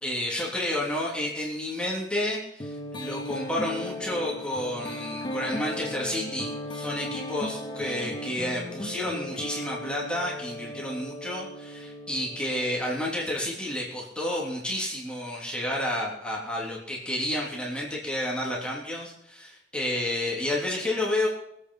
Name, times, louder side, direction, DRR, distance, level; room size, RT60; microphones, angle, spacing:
voice 1, 0.0-21.3, left 1 dB, 5° left, -4 dB, 3.2 m, -30 dB
sound 1, 2.6-13.2, left 1 dB, 25° left, 1.8 m, -37 dB
22.0 x 8.4 x 5.6 m, 0.78 s
head